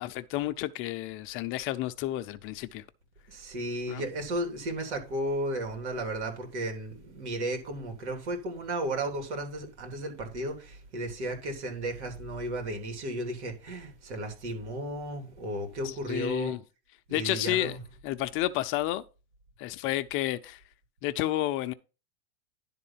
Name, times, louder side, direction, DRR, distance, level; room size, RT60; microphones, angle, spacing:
voice 1, 0.0-2.8 3.9-4.0 15.8-16.6 17.1-17.8 18.0-19.0 19.6-20.6 21.0-21.7, left 15 dB, 40° left, 0.6 m, -31 dB
voice 2, 3.3-16.6 17.1-17.8, right 1 dB, 75° right, 3.3 m, -34 dB
11.0 x 3.8 x 5.7 m
hypercardioid pair, 125°, 34 cm